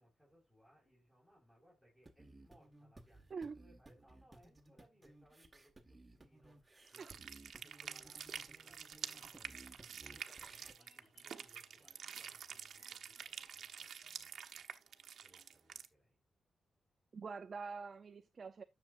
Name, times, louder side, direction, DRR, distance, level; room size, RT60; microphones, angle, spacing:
voice 1, 0.0-16.2, equal, 5° left, 5.5 m, -69 dB
sound 1, 2.0-10.7, right 2 dB, 15° right, 1.7 m, -60 dB
voice 2, 3.3-3.6 7.0-7.1 17.1-18.6, right 5 dB, 40° right, 0.6 m, -45 dB
sound 2, 6.9-15.9, right 7 dB, 65° right, 1.0 m, -48 dB
sound 3, 8.9-14.2, left 3 dB, 70° left, 3.5 m, -74 dB
10.5 x 6.8 x 2.6 m
cardioid pair, 120°, 0 cm